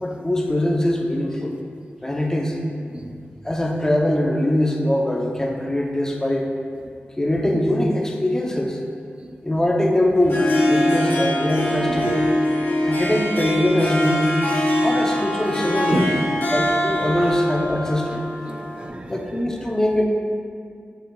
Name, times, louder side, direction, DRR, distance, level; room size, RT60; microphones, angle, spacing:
voice 1, 0.0-1.6 2.0-2.6 3.4-6.5 7.2-8.8 9.4-12.2 12.8-14.4 14.8-16.1 16.5-18.2 19.1-20.1, left 1 dB, 15° left, 0.6 m, -22 dB
Harp, 10.1-18.9, left 1 dB, 55° left, 1.0 m, -23 dB
voice 2, 11.6-12.2 15.9-16.6 17.2-17.4 18.1-18.2 18.5-19.4, right 1 dB, 25° right, 0.4 m, -30 dB
6.6 x 6.4 x 2.3 m
wide cardioid pair, 130°, 4 cm